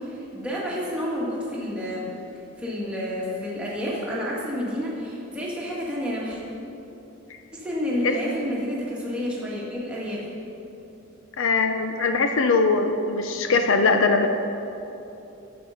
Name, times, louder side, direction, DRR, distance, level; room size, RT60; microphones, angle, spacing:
voice 1, 0.0-2.1 2.6-6.4 7.5-10.3, equal, 5° right, -6 dB, 1.7 m, -30 dB
voice 2, 11.4-14.3, left 4 dB, 60° left, 6 dB, 0.5 m, -21 dB
9.1 x 7.8 x 5.6 m, 2.9 s
head